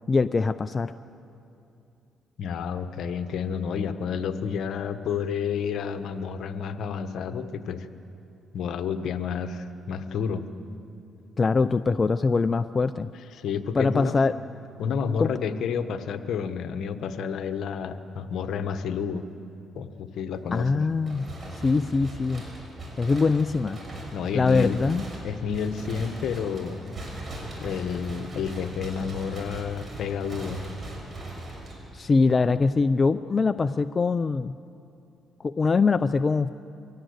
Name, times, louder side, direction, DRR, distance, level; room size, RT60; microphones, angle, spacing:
voice 1, 0.1-0.9 11.4-13.1 13.7-14.3 15.2-15.3 20.5-21.3 21.6-22.4 23.0-23.8 24.3-25.0 31.9-34.6 35.4-36.5, left 4 dB, 35° left, 11 dB, 0.5 m, -23 dB
voice 2, 2.4-7.9 8.5-10.4 13.3-14.1 14.8-19.2 19.7-20.8 24.1-24.8 25.2-26.8 27.6-30.6, left 6 dB, 70° left, 9 dB, 1.2 m, -30 dB
sound 1, 21.0-32.2, right 1 dB, 35° right, 6.5 m, -39 dB
23.5 x 17.0 x 8.1 m, 2.7 s
cardioid pair, 85°, 0 cm